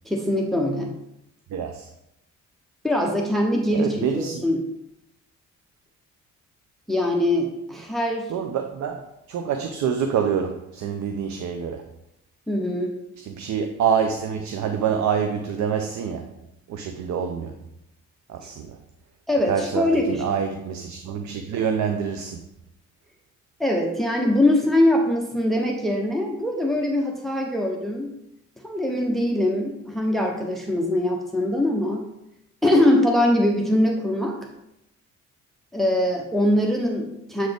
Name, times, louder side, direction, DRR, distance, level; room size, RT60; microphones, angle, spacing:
voice 1, 0.1-1.0 2.8-4.6 6.9-8.3 12.5-12.9 19.3-20.4 23.6-28.1 28.6-32.1 32.6-34.4 35.7-37.5, left 1 dB, ahead, 1 dB, 0.8 m, -22 dB
voice 2, 1.5-1.9 3.7-4.4 8.3-11.9 13.2-16.3 16.7-17.6 18.3-18.8 19.4-22.5, right 7 dB, 70° right, 6 dB, 0.6 m, -26 dB
7.8 x 3.9 x 3.5 m, 0.84 s
cardioid pair, 90°, 30 cm